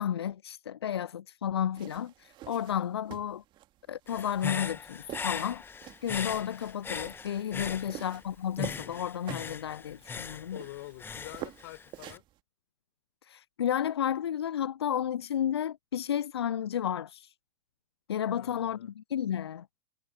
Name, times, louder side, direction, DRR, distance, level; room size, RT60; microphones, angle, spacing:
voice 1, 0.0-3.4 3.9-5.6 6.0-10.6 13.2-17.3 18.1-19.7, left 9 dB, 80° left, 0.4 m, -32 dB
sound 1, 1.8-12.4, right 15 dB, 35° right, 2.4 m, -47 dB
Human voice / Breathing, 4.1-8.2 8.6-12.2, left 5 dB, 15° left, 1.3 m, -39 dB
voice 2, 10.5-12.3 18.2-18.9, left 19 dB, 55° left, 6.7 m, -47 dB
figure-of-eight pair, 95°, 13 cm